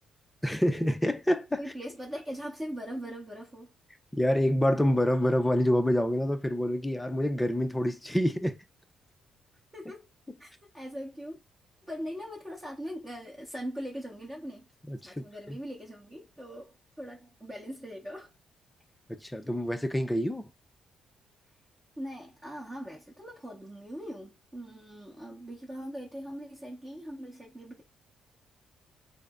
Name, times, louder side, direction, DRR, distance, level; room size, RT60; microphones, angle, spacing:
voice 1, 0.4-1.6 4.1-8.6 14.9-15.6 19.1-20.5, equal, 10° left, 0.6 m, -27 dB
voice 2, 1.6-3.7 9.7-10.1 10.4-11.4 11.9-14.7 15.0-18.3 22.0-27.8, equal, 15° right, 0.9 m, -41 dB
3.9 x 2.0 x 3.6 m
cardioid pair, 90°, 0 cm